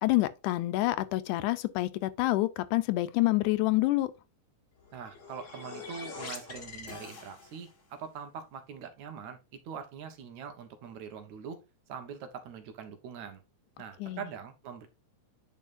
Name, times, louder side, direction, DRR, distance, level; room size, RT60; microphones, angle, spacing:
voice 1, 0.0-4.1 14.0-14.2, left 18 dB, 85° left, 2.1 m, -27 dB
sound 1, 4.8-7.8, left 4 dB, 35° left, 1.2 m, -44 dB
voice 2, 4.9-9.4 9.7-11.6 11.9-13.4 13.8-14.9, right 7 dB, 70° right, 2.4 m, -43 dB
9.3 x 5.4 x 2.6 m
omnidirectional pair, 3.5 m